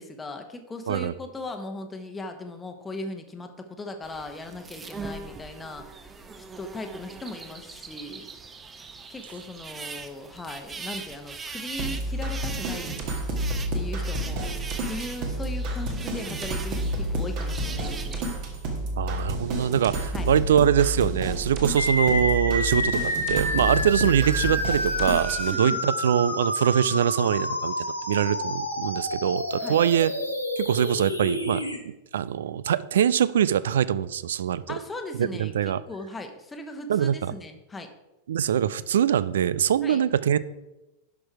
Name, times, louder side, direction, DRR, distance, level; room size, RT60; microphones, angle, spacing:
voice 1, 0.0-6.1 6.4-8.3 9.1-13.0 13.7-14.5 14.9-18.3 20.1-20.3 25.5-25.8 29.6-29.8 34.7-37.9 39.8-40.0, left 2 dB, 15° left, 5 dB, 1.1 m, -38 dB
sound 1, 4.0-18.2, right 4 dB, 20° right, 0.8 m, -41 dB
sound 2, 11.8-25.5, right 1 dB, 45° right, 1.8 m, -30 dB
voice 2, 19.0-30.1 30.6-31.6 32.1-34.8 35.2-35.8 36.9-37.2 38.3-40.4, right 9 dB, 60° right, 17 dB, 0.4 m, -23 dB
sound 3, 21.8-31.8, left 1 dB, 90° left, 1.2 m, -29 dB
11.0 x 6.0 x 4.8 m, 0.99 s
figure-of-eight pair, 90°, 0 cm